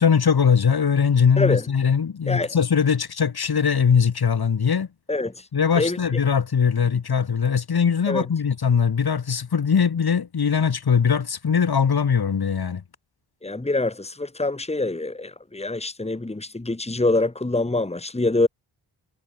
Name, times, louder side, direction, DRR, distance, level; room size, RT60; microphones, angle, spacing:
voice 1, 0.0-4.9 5.5-12.8, left 6 dB, 50° left, 2.7 m, -21 dB
voice 2, 13.4-18.5, left 2 dB, 15° left, 2.3 m, -25 dB
cardioid pair, 65°, 48 cm